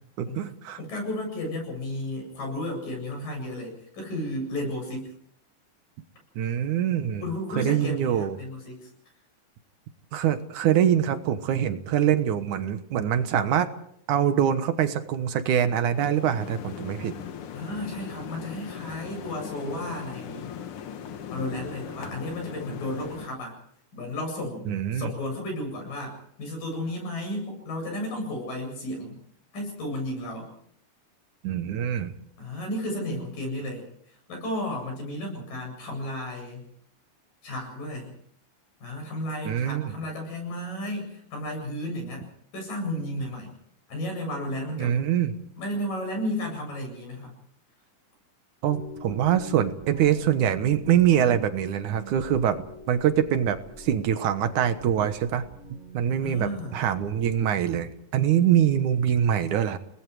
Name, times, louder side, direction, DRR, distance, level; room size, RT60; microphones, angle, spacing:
voice 1, 0.2-0.8 6.4-7.3 7.6-8.4 10.1-13.7 14.1-17.1 24.7-25.1 31.4-32.1 39.5-39.9 44.8-45.3 48.6-52.6 52.9-55.4 55.9-59.8, right 9 dB, 70° right, 10 dB, 2.6 m, -24 dB
voice 2, 0.8-5.1 7.2-8.9 17.5-20.5 21.3-23.6 23.9-29.2 29.5-30.5 32.4-33.9 34.3-36.6 37.4-38.1 38.8-43.6 43.9-45.0 45.6-47.4 56.2-56.8, left 1 dB, 90° left, 2 dB, 9.7 m, -33 dB
sound 1, 15.4-23.3, left 8 dB, 55° left, 1.6 m, -39 dB
sound 2, 48.7-57.4, equal, 30° right, 3.2 m, -46 dB
29.5 x 20.0 x 4.8 m, 0.67 s
omnidirectional pair, 3.8 m